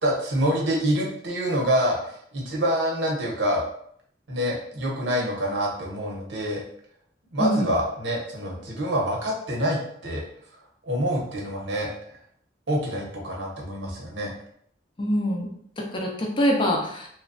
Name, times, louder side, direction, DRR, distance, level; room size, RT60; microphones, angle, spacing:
voice 1, 0.0-3.6 4.3-6.6 7.3-10.2 10.9-11.9 12.7-14.3, equal, 85° right, -3 dB, 0.9 m, -26 dB
voice 2, 7.4-7.7 15.0-15.5 15.8-17.1, equal, 30° left, 1 dB, 0.4 m, -24 dB
3.0 x 2.2 x 2.6 m, 0.66 s
head